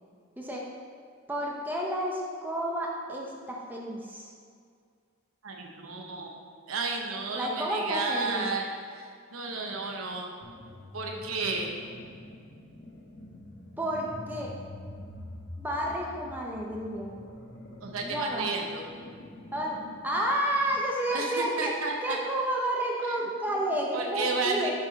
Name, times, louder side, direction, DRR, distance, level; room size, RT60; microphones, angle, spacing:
voice 1, 1.3-4.3 7.3-8.5 13.8-14.5 15.6-17.2 18.0-18.5 19.5-21.7 22.0-24.7, right 1 dB, 10° right, -2 dB, 0.7 m, -31 dB
voice 2, 5.4-6.4 6.7-8.7 9.0-10.3 10.9-11.7 17.8-18.8 21.1-22.2 23.9-24.7, right 4 dB, 80° right, 1 dB, 0.9 m, -32 dB
sound 1, 10.4-20.9, left 1 dB, 55° left, 1.2 m, -46 dB
6.8 x 5.4 x 5.2 m, 2.2 s
head